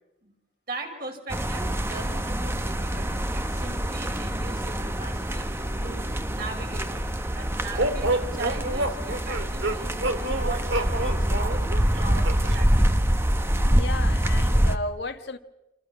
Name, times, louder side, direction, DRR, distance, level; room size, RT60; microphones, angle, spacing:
voice 1, 0.7-5.5 5.8-7.0 7.3-11.7 12.0-13.0, right 3 dB, 50° right, 5.8 m, -39 dB
sound 1, 1.3-14.8, equal, 15° right, 1.0 m, -25 dB
sound 2, 7.8-12.6, right 2 dB, 75° right, 2.1 m, -28 dB
voice 2, 13.6-15.4, left 2 dB, 60° left, 1.5 m, -34 dB
28.5 x 26.5 x 6.0 m
head